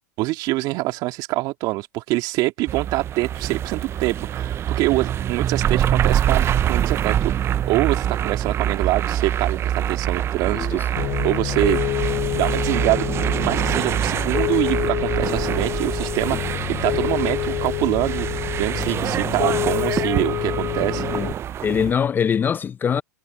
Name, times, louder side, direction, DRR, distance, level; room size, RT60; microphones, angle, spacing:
voice 1, 0.2-7.3 7.7-11.8 12.3-13.1 13.4-16.4 16.7-21.0, right 20 dB, 50° right, 2.4 m, -25 dB
sound 1, 2.7-21.9, right 10 dB, 30° right, 0.7 m, -25 dB
Piano, 11.0-21.3, left 17 dB, 45° left, 5.6 m, -27 dB
voice 2, 21.6-23.0, left 7 dB, 20° left, 0.6 m, -23 dB
hypercardioid pair, 105°, 9 cm